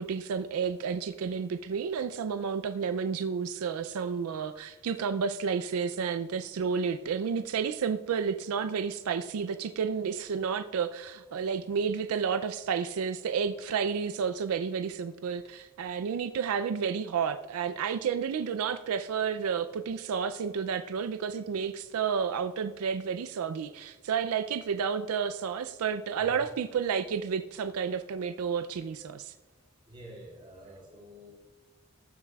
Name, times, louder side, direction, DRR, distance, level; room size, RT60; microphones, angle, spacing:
voice 1, 0.0-29.3, right 6 dB, 85° right, 9 dB, 0.4 m, -31 dB
voice 2, 29.9-31.3, equal, 25° right, -2 dB, 3.0 m, -48 dB
19.0 x 7.3 x 2.3 m, 1.3 s
head